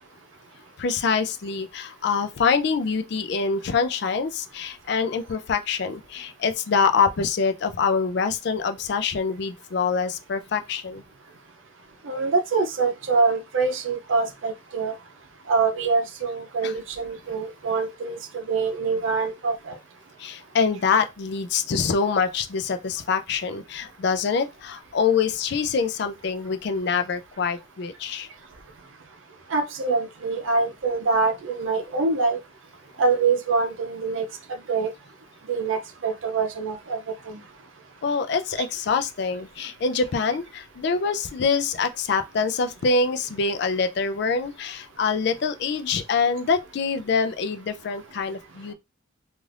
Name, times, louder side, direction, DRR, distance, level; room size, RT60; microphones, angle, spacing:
voice 1, 0.8-11.0 16.6-16.8 20.2-28.3 38.0-48.7, left 5 dB, 60° left, 0.4 m, -25 dB
voice 2, 12.1-14.9 15.5-19.8 29.5-32.4 33.0-34.3 34.7-34.9 35.5-37.0 37.3-37.4, right 4 dB, 85° right, 0.6 m, -24 dB
2.5 x 2.5 x 3.2 m
head